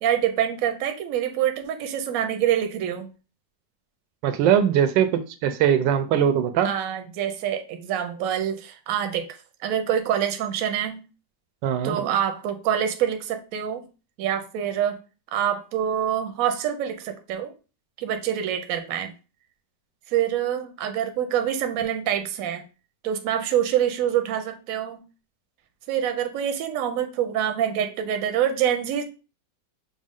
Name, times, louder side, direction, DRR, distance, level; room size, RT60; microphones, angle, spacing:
voice 1, 0.0-3.1 6.6-9.3 9.6-11.0 11.8-13.8 14.2-15.0 15.3-17.5 18.0-19.1 20.1-22.6 23.0-25.0 25.9-29.0, right 10 dB, 65° right, 6 dB, 0.9 m, -26 dB
voice 2, 4.2-6.7 11.6-12.1, right 9 dB, 85° right, 10 dB, 1.3 m, -21 dB
6.1 x 2.0 x 3.6 m, 0.33 s
omnidirectional pair, 1.9 m